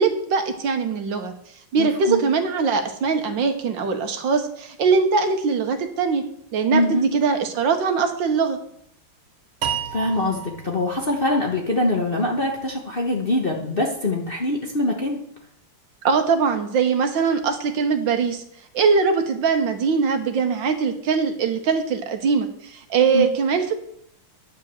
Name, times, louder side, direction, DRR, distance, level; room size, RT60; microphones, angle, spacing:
voice 1, 0.0-1.3 1.7-6.2 6.5-8.6 16.0-18.4 18.7-23.7, right 5 dB, 65° right, 6 dB, 1.6 m, -21 dB
voice 2, 1.8-2.2 6.7-7.1 9.9-15.2 23.1-23.3, left 1 dB, 35° left, 0 dB, 1.0 m, -23 dB
sound 1, 9.6-12.8, right 8 dB, 85° right, 2.2 m, -33 dB
10.0 x 5.2 x 7.4 m, 0.67 s
omnidirectional pair, 2.3 m